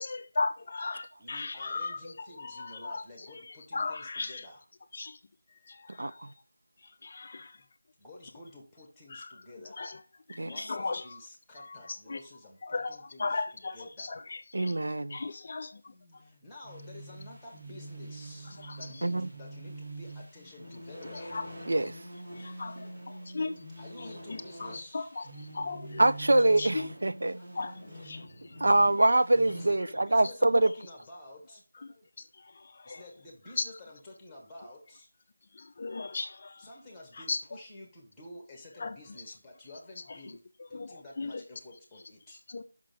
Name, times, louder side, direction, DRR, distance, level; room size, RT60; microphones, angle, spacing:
voice 1, 0.0-4.5 4.9-5.2 5.5-6.4 6.8-7.6 9.1-10.0 10.3-11.2 11.5-12.2 12.6-14.8 15.1-16.2 18.5-19.1 21.1-21.5 21.8-21.9 22.3-23.7 24.0-26.1 26.6-26.9 27.5-28.6 28.9-29.2 30.2-30.3 31.7-33.0 33.6-33.7 35.5-36.7 37.1-37.4 38.8-39.0 40.1-40.4 40.7-41.4 42.3-42.6, left 3 dB, 30° left, 0.4 m, -38 dB
voice 2, 1.2-4.6 7.3-7.7 8.0-9.9 10.4-13.4 13.7-14.1 15.9-21.3 22.9-23.0 23.8-25.1 27.4-27.9 28.4-28.7 29.5-32.1 32.8-35.1 36.6-40.4 40.7-42.4, left 1 dB, 5° left, 1.1 m, -51 dB
voice 3, 6.0-6.3 10.4-10.5 14.5-15.2 19.0-19.2 21.7-22.0 26.0-27.4 28.6-30.7, right 2 dB, 65° right, 0.4 m, -24 dB
sound 1, 16.6-29.7, right 1 dB, 25° right, 2.7 m, -45 dB
6.0 x 5.8 x 3.4 m
figure-of-eight pair, 175°, 0 cm